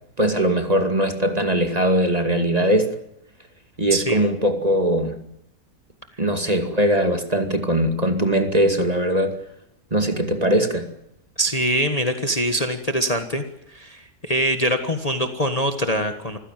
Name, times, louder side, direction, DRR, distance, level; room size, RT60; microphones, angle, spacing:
voice 1, 0.2-3.0 3.8-5.2 6.2-9.4 9.9-10.9, right 1 dB, 25° right, 2.4 m, -20 dB
voice 2, 3.9-4.3 11.4-13.4 13.7-16.4, equal, 25° left, 1.6 m, -23 dB
26.0 x 15.5 x 9.2 m
omnidirectional pair, 1.7 m